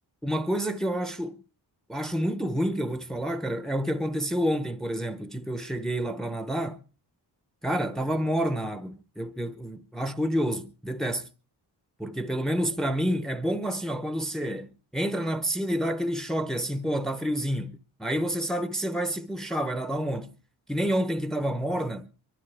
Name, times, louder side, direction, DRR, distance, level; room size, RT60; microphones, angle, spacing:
voice 1, 0.2-1.4 1.9-6.8 7.6-11.3 12.0-20.3 20.7-22.1, equal, ahead, 0.7 m, -29 dB
24.5 x 12.5 x 3.3 m
wide cardioid pair, 165°, 41 cm